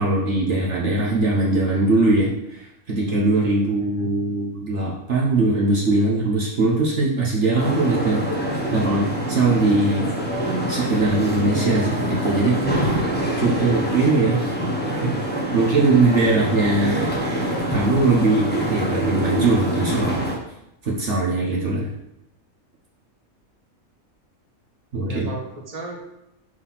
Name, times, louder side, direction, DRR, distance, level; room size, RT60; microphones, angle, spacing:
voice 1, 0.0-8.2 8.5-10.0 10.4-12.8 13.4-14.4 15.0-15.1 15.5-17.2 17.7-20.2 20.8-21.9 24.9-25.3, right 2 dB, 55° right, -3 dB, 1.4 m, -21 dB
voice 2, 3.8-4.2 25.0-26.0, right 3 dB, 30° right, -1 dB, 1.4 m, -36 dB
sound 1, 7.6-20.4, right 1 dB, 10° left, 1.1 m, -25 dB
Mallet percussion, 11.4-13.7, left 1 dB, 30° left, 2.6 m, -42 dB
6.6 x 4.0 x 5.6 m, 0.84 s
omnidirectional pair, 1.5 m